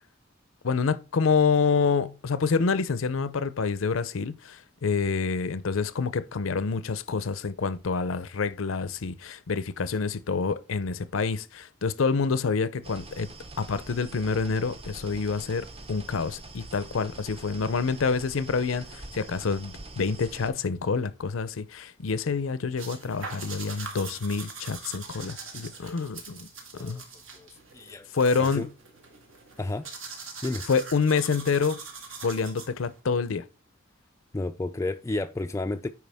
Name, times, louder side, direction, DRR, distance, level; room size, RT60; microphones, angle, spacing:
voice 1, 0.6-13.3 13.6-26.5 26.7-27.0 28.1-28.7 30.7-31.8 32.2-33.4, left 5 dB, 80° left, 0.6 m, -27 dB
sound 1, 12.8-20.5, right 2 dB, 30° right, 0.7 m, -44 dB
sound 2, 22.8-33.0, right 4 dB, 75° right, 1.7 m, -42 dB
voice 2, 27.7-28.1 28.4-28.7 29.6-29.8 30.4-30.6 34.3-35.9, left 2 dB, 15° left, 0.3 m, -31 dB
9.3 x 4.8 x 3.5 m
head